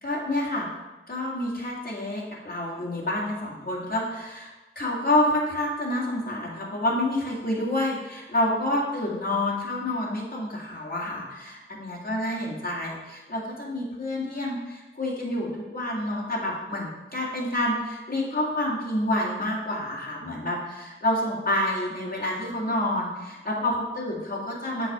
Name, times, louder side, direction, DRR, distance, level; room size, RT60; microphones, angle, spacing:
voice 1, 0.0-0.7 1.1-4.5 4.8-24.9, left 1 dB, 45° left, -5 dB, 2.2 m, -28 dB
7.9 x 4.1 x 6.0 m, 1.1 s
wide cardioid pair, 40°, 21 cm